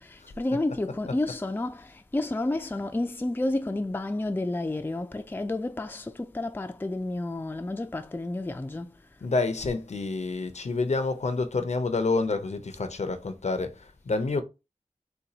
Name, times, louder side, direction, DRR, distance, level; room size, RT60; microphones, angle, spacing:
voice 1, 0.0-8.9, left 2 dB, 15° left, 0.4 m, -30 dB
voice 2, 9.2-14.4, left 3 dB, 60° left, 0.6 m, -28 dB
4.1 x 2.3 x 2.7 m
wide cardioid pair, 45°, 13 cm